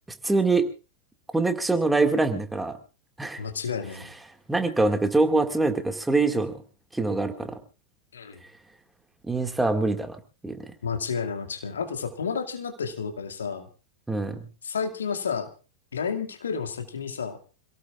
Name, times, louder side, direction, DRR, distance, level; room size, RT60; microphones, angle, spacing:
voice 1, 0.2-0.7 1.3-2.7 3.2-3.4 4.5-6.6 6.9-7.6 9.3-10.2 10.4-10.6 14.1-14.4, right 3 dB, 5° right, 6 dB, 2.1 m, -24 dB
voice 2, 3.4-4.1 8.1-8.4 10.8-13.7 14.6-15.5 15.9-17.4, left 6 dB, 70° left, 6 dB, 2.3 m, -31 dB
27.5 x 17.5 x 2.5 m, 0.34 s
figure-of-eight pair, 90°, 0 cm